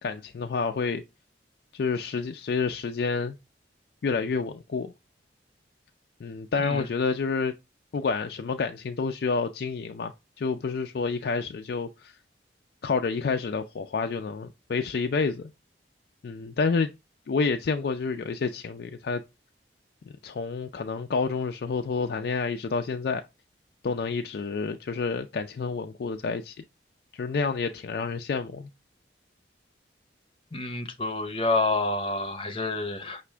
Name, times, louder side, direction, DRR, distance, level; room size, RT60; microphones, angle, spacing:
voice 1, 0.0-1.0 1.7-3.4 4.0-4.9 6.2-7.5 7.9-12.1 12.8-15.5 16.2-16.9 17.3-19.2 20.2-23.2 23.8-26.6 27.1-28.7, left 4 dB, 55° left, 0.4 m, -29 dB
voice 2, 30.5-33.2, left 2 dB, 30° left, 0.7 m, -28 dB
5.9 x 2.5 x 3.3 m
head